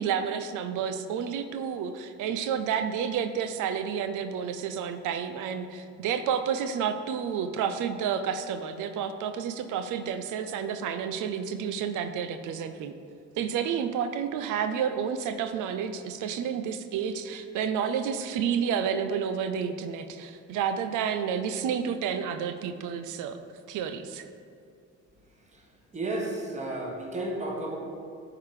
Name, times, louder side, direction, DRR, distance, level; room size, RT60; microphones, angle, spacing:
voice 1, 0.0-12.9 13.4-23.4 23.7-24.2, right 7 dB, 90° right, 9 dB, 0.5 m, -30 dB
voice 2, 25.9-27.8, right 2 dB, 25° right, -1 dB, 1.4 m, -32 dB
9.0 x 3.9 x 4.8 m, 2.4 s
cardioid pair, 90°, 30 cm